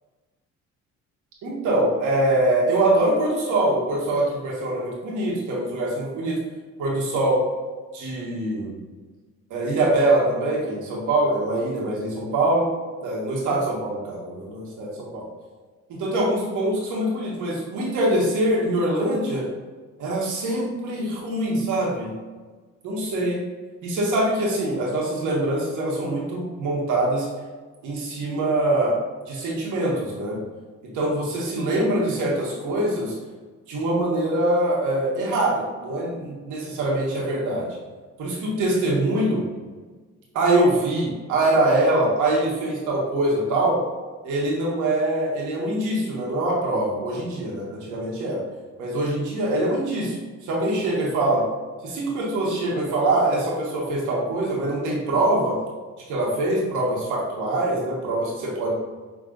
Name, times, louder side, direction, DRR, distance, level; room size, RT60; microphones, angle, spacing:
voice 1, 1.4-6.4 6.8-7.4 7.9-8.8 9.5-12.7 13.0-15.3 15.9-19.5 20.0-22.1 22.8-23.4 23.8-27.3 27.8-28.9 29.3-30.4 30.9-33.1 33.7-37.7 38.2-39.4 40.3-43.8 44.2-48.4 48.8-51.5 51.8-55.6 56.1-58.7, right 1 dB, 90° right, -3 dB, 1.5 m, -23 dB
6.1 x 3.3 x 2.5 m, 1.4 s
cardioid pair, 90°, 30 cm